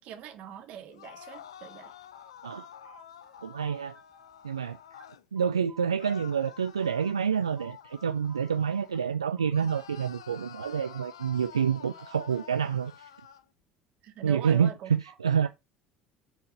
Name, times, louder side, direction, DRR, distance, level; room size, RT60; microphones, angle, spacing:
voice 1, 0.0-1.9 14.0-14.9 15.4-15.5, right 8 dB, 55° right, 2.0 m, -42 dB
sound 1, 0.9-5.2 6.0-9.1 9.5-13.4, left 9 dB, 75° left, 0.5 m, -49 dB
sound 2, 1.8-4.3 4.6-7.2 7.6-10.1 10.5-13.1, right 5 dB, 30° right, 1.5 m, -56 dB
voice 2, 3.4-4.0 4.4-4.8 5.3-13.1 14.2-15.5, right 7 dB, 85° right, 0.3 m, -28 dB
7.8 x 4.5 x 5.3 m
figure-of-eight pair, 60°, 3 cm